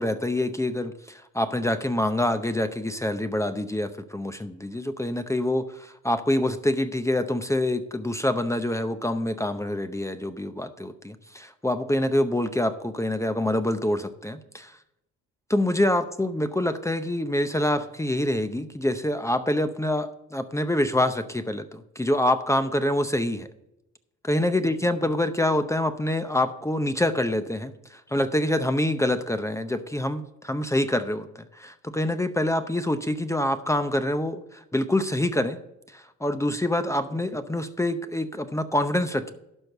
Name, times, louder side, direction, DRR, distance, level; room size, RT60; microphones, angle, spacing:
voice 1, 0.0-14.8 15.5-23.5 24.2-35.6 35.9-39.3, left 1 dB, 10° left, 9 dB, 0.6 m, -26 dB
12.0 x 4.6 x 6.7 m, 0.84 s
cardioid pair, 90°, 30 cm